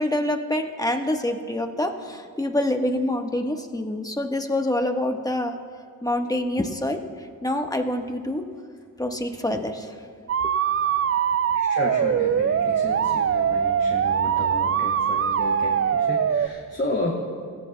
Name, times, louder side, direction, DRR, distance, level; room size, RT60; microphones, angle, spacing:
voice 1, 0.0-5.5 6.0-7.0 7.4-8.5 9.0-9.9, left 1 dB, 10° left, 4 dB, 1.3 m, -26 dB
sound 1, 10.3-16.5, right 8 dB, 35° right, 0.4 m, -22 dB
voice 2, 10.8-17.1, left 1 dB, 25° left, -4 dB, 2.5 m, -32 dB
22.5 x 14.5 x 2.3 m, 2.1 s
cardioid pair, 45°, 39 cm